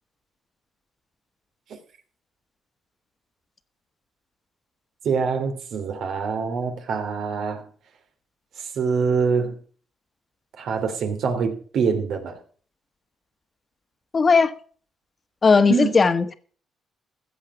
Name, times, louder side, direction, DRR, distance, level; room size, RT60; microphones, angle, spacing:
voice 1, 5.0-7.6 8.6-9.6 10.6-12.4 15.7-16.0, right 5 dB, 70° right, 3.1 m, -25 dB
voice 2, 14.1-14.5 15.4-16.3, left 4 dB, 35° left, 1.5 m, -17 dB
15.0 x 7.6 x 6.1 m
cardioid pair, 90°, 0 cm